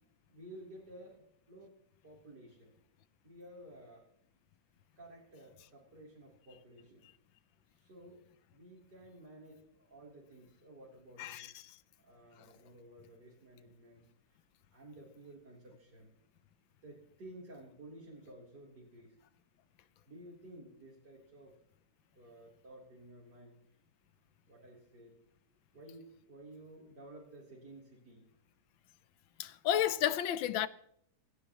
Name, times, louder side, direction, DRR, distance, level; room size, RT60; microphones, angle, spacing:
voice 1, 0.3-1.7 2.0-2.7 3.2-4.1 5.0-7.1 7.7-8.2 8.5-11.7 12.0-14.1 14.7-16.1 16.8-19.2 20.1-21.5 22.2-23.6 24.5-25.2 25.7-28.3, right 1 dB, 55° right, 4.1 m, -54 dB
voice 2, 11.2-11.5 29.4-30.7, left 11 dB, 85° left, 1.5 m, -31 dB
27.0 x 11.0 x 3.0 m
omnidirectional pair, 2.1 m